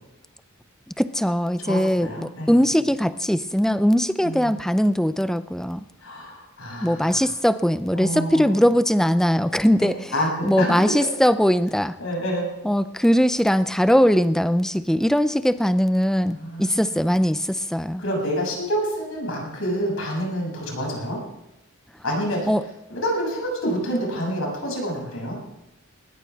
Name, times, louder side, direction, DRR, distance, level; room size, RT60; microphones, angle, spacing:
voice 1, 1.0-5.8 6.8-10.1 10.4-12.0 12.6-18.0 22.5-22.6, equal, ahead, 12 dB, 0.5 m, -20 dB
voice 2, 1.6-2.7 4.2-4.5 6.0-7.3 7.9-8.6 10.1-10.7 12.0-12.5 16.3-16.8 18.0-21.2 22.0-22.5 22.9-25.4, equal, 75° left, -1 dB, 7.4 m, -27 dB
20.0 x 20.0 x 3.6 m, 0.90 s
head